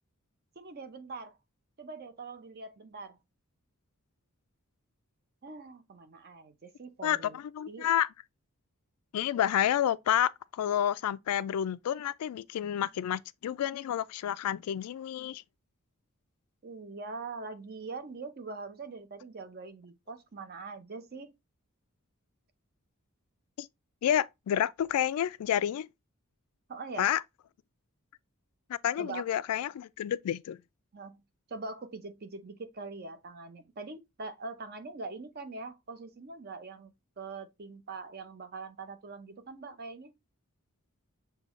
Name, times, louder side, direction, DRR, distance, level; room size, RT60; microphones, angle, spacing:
voice 1, 0.6-1.4 1.8-3.2 5.4-7.4 7.7-7.9 16.6-21.3 26.7-27.1 29.0-29.2 30.9-31.2 31.5-40.1, right 3 dB, 45° right, 0.6 m, -43 dB
voice 2, 7.0-8.1 9.1-15.4 23.6-23.7 24.0-25.9 27.0-27.2 28.7-30.6, left 10 dB, 85° left, 0.3 m, -29 dB
6.6 x 2.3 x 3.0 m
head